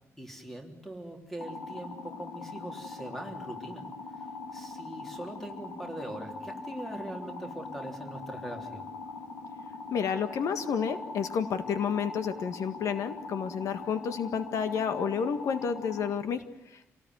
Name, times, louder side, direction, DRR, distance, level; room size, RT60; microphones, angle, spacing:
voice 1, 0.2-3.9 4.5-8.9, right 1 dB, 5° left, 3 dB, 3.6 m, -41 dB
sound 1, 1.4-16.1, left 3 dB, 50° left, 3.4 m, -42 dB
voice 2, 9.9-16.9, left 7 dB, 70° left, 9 dB, 1.8 m, -30 dB
27.0 x 18.5 x 9.6 m, 0.79 s
wide cardioid pair, 170°, 6 cm